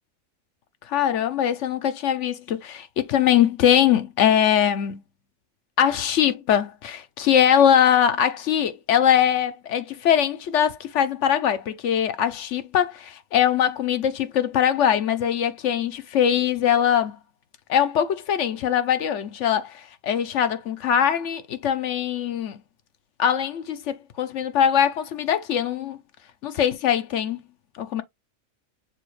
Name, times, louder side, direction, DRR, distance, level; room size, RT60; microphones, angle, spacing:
voice 1, 0.9-5.0 5.8-17.2 17.7-22.6 23.2-26.0 26.4-27.4 27.8-28.0, left 9 dB, 65° left, 0.9 m, -22 dB
6.9 x 2.4 x 3.1 m
omnidirectional pair, 1.5 m